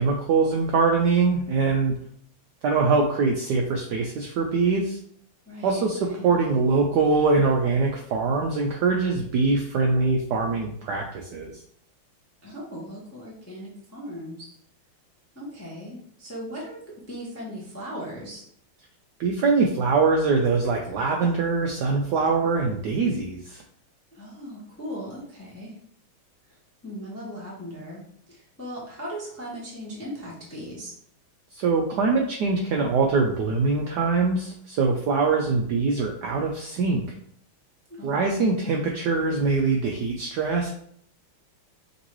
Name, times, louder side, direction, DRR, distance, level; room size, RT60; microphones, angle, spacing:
voice 1, 0.0-1.9 2.6-5.0 5.6-11.5 19.2-23.6 31.5-37.1 38.0-40.7, right 4 dB, 80° right, 1 dB, 0.9 m, -23 dB
voice 2, 5.5-5.8 6.1-6.3 12.4-14.5 15.3-18.4 24.1-25.8 26.5-26.6 26.8-30.9 37.9-38.3, equal, 15° left, -5 dB, 0.5 m, -38 dB
5.3 x 3.0 x 3.0 m, 0.63 s
omnidirectional pair, 2.3 m